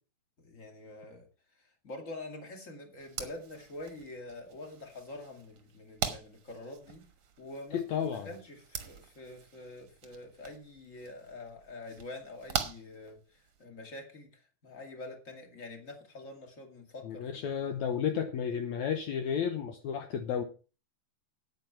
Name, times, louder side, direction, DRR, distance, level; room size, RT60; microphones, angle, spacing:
voice 1, 0.4-1.2 1.6-7.0 7.4-17.4, left 2 dB, 25° left, 4 dB, 2.3 m, -46 dB
sound 1, 3.0-13.6, right 8 dB, 55° right, 1.7 m, -43 dB
voice 2, 7.7-8.3 17.0-20.4, left 8 dB, 70° left, 6 dB, 2.1 m, -32 dB
9.2 x 9.2 x 5.8 m, 0.35 s
omnidirectional pair, 3.8 m